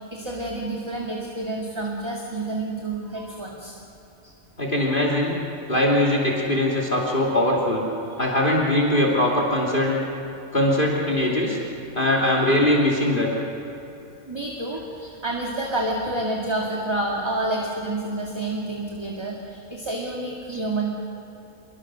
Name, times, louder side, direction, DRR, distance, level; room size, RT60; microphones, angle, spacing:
voice 1, 0.0-3.8 8.1-8.2 14.3-20.9, right 2 dB, 20° right, -2 dB, 2.1 m, -29 dB
voice 2, 4.6-5.4 5.7-7.8 8.2-10.0 10.5-11.6 11.9-13.3 20.5-20.6, left 1 dB, 35° left, -2 dB, 3.1 m, -21 dB
27.0 x 22.0 x 6.3 m, 2.9 s
omnidirectional pair, 1.5 m